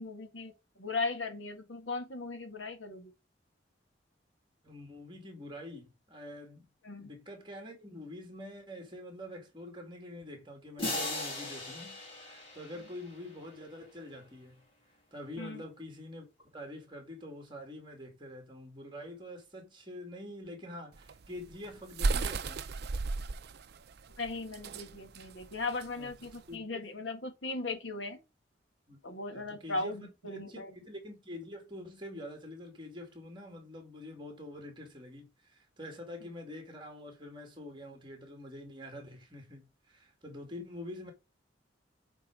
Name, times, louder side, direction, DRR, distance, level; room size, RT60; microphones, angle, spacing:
voice 1, 0.0-3.1 6.8-7.1 15.4-15.6 24.2-28.2 29.0-30.7, left 3 dB, 75° left, 1.7 m, -38 dB
voice 2, 4.6-6.7 7.0-14.6 15.1-22.7 25.9-26.1 26.5-26.9 28.9-29.0 29.3-30.1 30.3-41.1, left 1 dB, 25° right, 2.1 m, -46 dB
sound 1, 10.8-13.6, left 2 dB, 30° left, 2.4 m, -38 dB
sound 2, 20.9-26.5, right 3 dB, 55° right, 0.5 m, -35 dB
8.3 x 3.7 x 4.6 m
head